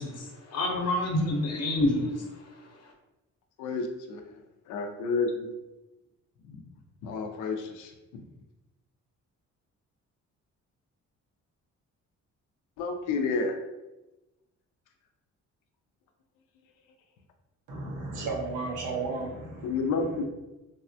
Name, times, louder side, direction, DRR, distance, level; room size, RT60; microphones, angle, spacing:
voice 1, 0.0-2.1, left 1 dB, 55° left, 1 dB, 0.8 m, -27 dB
voice 2, 3.6-4.2 4.7-5.5 6.5-6.6 7.0-8.2 12.8-13.6 19.6-20.2, left 4 dB, 90° left, 5 dB, 0.5 m, -30 dB
voice 3, 17.7-20.2, right 3 dB, 85° right, -1 dB, 0.9 m, -34 dB
3.4 x 2.1 x 2.6 m, 1.0 s
cardioid pair, 90°, 30 cm